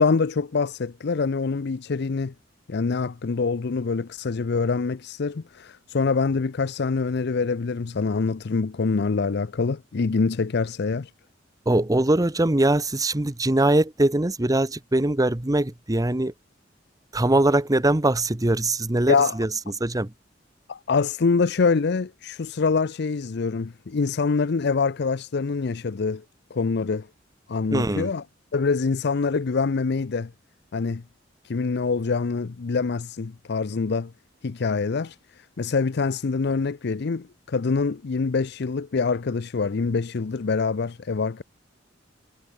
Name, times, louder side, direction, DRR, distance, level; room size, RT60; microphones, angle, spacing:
voice 1, 0.0-2.3 2.7-11.1 19.1-19.3 20.7-26.2 26.5-27.1 27.5-28.2 28.5-30.3 30.7-31.0 31.4-34.1 34.4-41.4, left 4 dB, 60° left, 0.5 m, -25 dB
voice 2, 11.6-16.3 17.1-20.1 27.7-28.1, right 1 dB, 20° right, 1.0 m, -22 dB
head